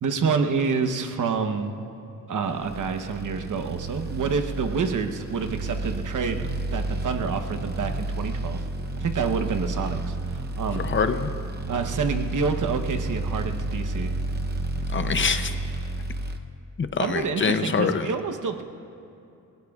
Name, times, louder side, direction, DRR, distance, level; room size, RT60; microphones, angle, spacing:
voice 1, 0.0-1.8 2.3-8.7 9.0-10.8 11.7-14.1 17.0-18.6, right 5 dB, 70° right, 6 dB, 1.0 m, -28 dB
sound 1, 2.6-16.4, right 2 dB, 30° right, 0.7 m, -31 dB
voice 2, 10.8-11.3 14.9-15.5 16.8-18.1, left 5 dB, 40° left, 9 dB, 0.6 m, -25 dB
29.0 x 17.0 x 2.4 m, 2.6 s
wide cardioid pair, 165°, 32 cm